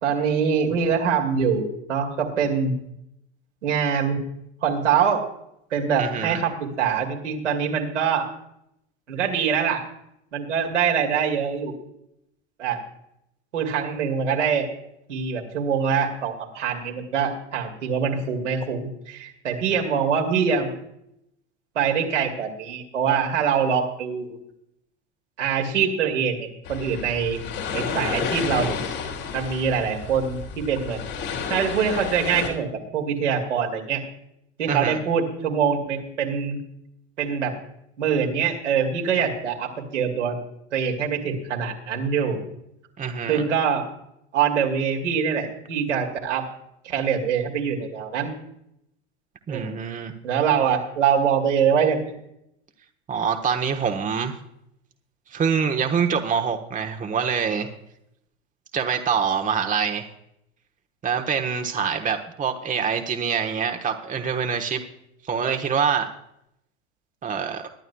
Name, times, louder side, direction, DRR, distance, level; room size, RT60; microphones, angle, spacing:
voice 1, 0.0-2.7 3.6-4.2 4.6-5.2 5.7-8.3 9.1-9.8 10.3-11.7 12.6-12.8 13.5-14.7 15.1-20.7 21.7-24.4 25.4-27.4 27.7-28.8 29.3-31.0 31.5-34.0 34.6-36.6 37.2-37.5 38.0-40.4 40.7-42.4 43.3-43.8 44.3-46.5 46.8-48.3 49.5-49.7 50.2-52.1, right 7 dB, 80° right, 1 dB, 2.6 m, -24 dB
voice 2, 6.0-6.4 34.7-35.0 43.0-43.4 49.5-50.1 53.1-54.3 55.3-57.7 58.7-60.1 61.0-64.8 65.2-66.1 67.2-67.6, right 6 dB, 20° right, 5 dB, 1.2 m, -25 dB
sound 1, 26.6-32.5, left 6 dB, 65° left, 3.5 m, -31 dB
22.5 x 11.0 x 2.3 m, 0.78 s
hypercardioid pair, 85°, 35 cm